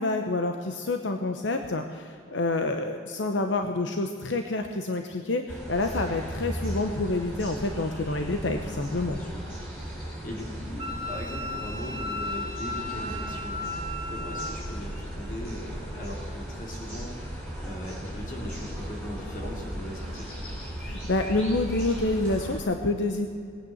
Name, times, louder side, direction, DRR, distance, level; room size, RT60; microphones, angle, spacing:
voice 1, 0.0-9.2 20.8-23.3, left 2 dB, 80° left, 5 dB, 0.8 m, -28 dB
sound 1, 5.5-22.6, equal, 10° left, 5.0 m, -37 dB
voice 2, 8.7-9.5 9.8-20.3, left 1 dB, 45° left, -1 dB, 3.3 m, -39 dB
Wind instrument woodwind instrument, 10.8-14.5, left 2 dB, 30° right, 1.5 m, -35 dB
18.5 x 9.2 x 7.9 m, 2.4 s
head